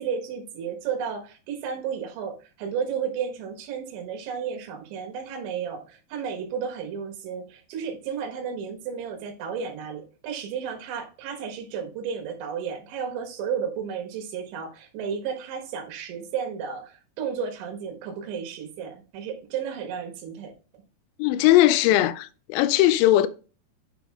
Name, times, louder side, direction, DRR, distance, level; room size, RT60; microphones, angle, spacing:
voice 1, 0.0-20.5, right 7 dB, 70° right, 3.6 m, -33 dB
voice 2, 21.2-23.3, left 14 dB, 85° left, 2.6 m, -19 dB
10.0 x 3.5 x 3.5 m
omnidirectional pair, 5.8 m